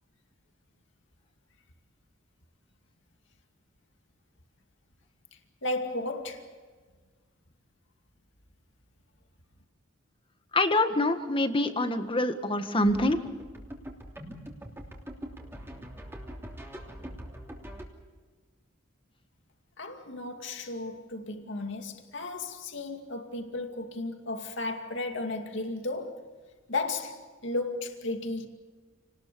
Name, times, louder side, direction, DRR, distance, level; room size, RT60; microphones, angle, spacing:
voice 1, 5.6-6.5 19.8-26.3 26.7-28.5, left 2 dB, 65° left, 2.4 m, -34 dB
voice 2, 10.5-13.2, left 1 dB, 25° left, 1.7 m, -25 dB
sound 1, 12.8-17.8, equal, 10° right, 3.1 m, -43 dB
29.0 x 19.5 x 7.0 m
head